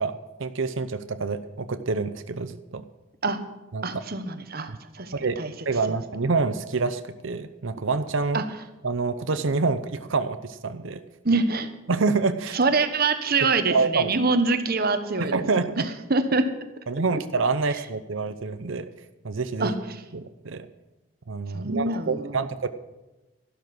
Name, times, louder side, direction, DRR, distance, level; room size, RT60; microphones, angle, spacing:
voice 1, 0.0-2.8 3.7-4.0 4.7-4.8 5.1-5.4 5.6-8.4 8.8-11.0 11.9-12.6 13.7-14.1 15.2-15.9 16.9-18.9 19.2-19.7 20.1-20.7 21.3-22.7, right 4 dB, 70° right, 11 dB, 0.7 m, -27 dB
voice 2, 3.8-5.5 5.9-6.0 8.3-8.4 11.2-11.7 12.5-15.4 15.8-16.5 19.6-20.0 21.5-22.4, right 3 dB, 45° right, 9 dB, 1.2 m, -25 dB
13.0 x 12.0 x 6.2 m, 1.1 s
head